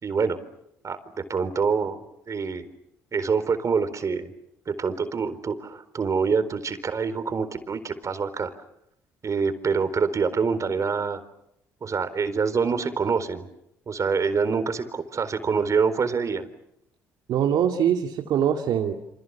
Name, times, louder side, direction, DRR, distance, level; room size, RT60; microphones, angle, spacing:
voice 1, 0.0-0.4 0.8-2.0 2.3-2.7 3.1-4.3 4.7-8.5 9.2-11.2 11.8-13.5 13.9-16.4, right 5 dB, 45° right, 11 dB, 4.2 m, -26 dB
voice 2, 17.3-18.9, right 9 dB, 70° right, 2 dB, 2.4 m, -23 dB
29.0 x 27.0 x 7.3 m, 0.80 s
hypercardioid pair, 55°, 8 cm